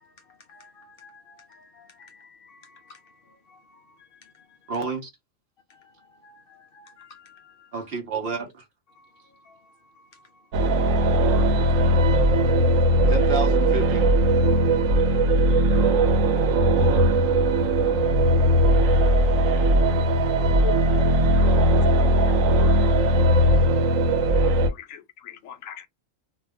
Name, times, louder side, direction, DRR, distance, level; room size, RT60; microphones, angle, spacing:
voice 1, 0.0-4.6 5.7-7.7 8.9-10.7 10.9-11.4 12.2-12.3, left 4 dB, 55° left, 0.7 m, -54 dB
voice 2, 4.7-5.1 7.7-8.6 13.1-14.1, right 4 dB, 55° right, 0.9 m, -29 dB
sound 1, 10.5-24.7, right 1 dB, 85° right, 1.0 m, -19 dB
voice 3, 20.6-21.4 24.7-25.9, left 10 dB, 85° left, 1.0 m, -38 dB
2.5 x 2.3 x 3.3 m
omnidirectional pair, 1.4 m